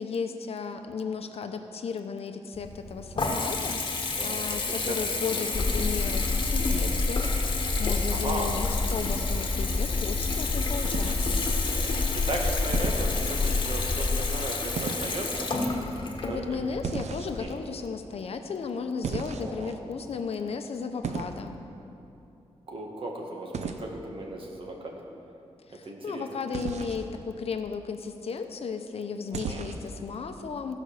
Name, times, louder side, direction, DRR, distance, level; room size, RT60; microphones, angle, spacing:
voice 1, 0.0-11.4 16.2-21.6 25.7-30.8, left 5 dB, 65° left, 7 dB, 0.7 m, -35 dB
Water tap faucet / Bathtub (filling or washing) / Trickle dribble, 2.5-17.4, left 3 dB, 45° left, 1.2 m, -31 dB
voice 2, 4.2-5.2 8.1-8.5 12.3-15.5 16.3-16.4 17.4-17.5 19.3-19.7 22.7-25.0 25.7-26.3 29.5-29.6, right 1 dB, 55° right, 0 dB, 1.7 m, -36 dB
sound 1, 5.5-15.1, left 3 dB, 20° left, 0.3 m, -29 dB
sound 2, 10.8-11.5 12.7-13.1 14.7-15.2 16.8-17.5 19.0-19.7 21.0-21.4 23.5-23.8 26.5-27.0 29.3-29.9, right 5 dB, 85° right, 0.7 m, -34 dB
16.0 x 5.3 x 6.6 m, 2.8 s
wide cardioid pair, 135°, 11 cm